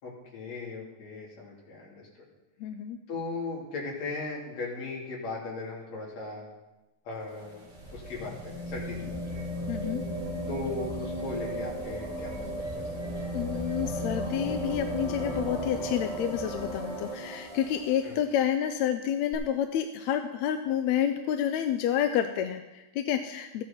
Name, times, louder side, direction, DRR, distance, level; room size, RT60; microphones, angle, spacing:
voice 1, 0.0-2.1 3.1-6.5 7.1-9.5 10.5-12.5 12.7-12.8 18.0-18.2, left 3 dB, 65° left, -3 dB, 3.9 m, -38 dB
voice 2, 2.6-3.0 9.7-10.0 13.3-23.6, left 10 dB, 80° left, 8 dB, 1.8 m, -29 dB
sound 1, 7.1-18.1 19.3-19.4, equal, 20° right, 3.7 m, -35 dB
14.5 x 9.5 x 4.4 m, 1.1 s
omnidirectional pair, 3.4 m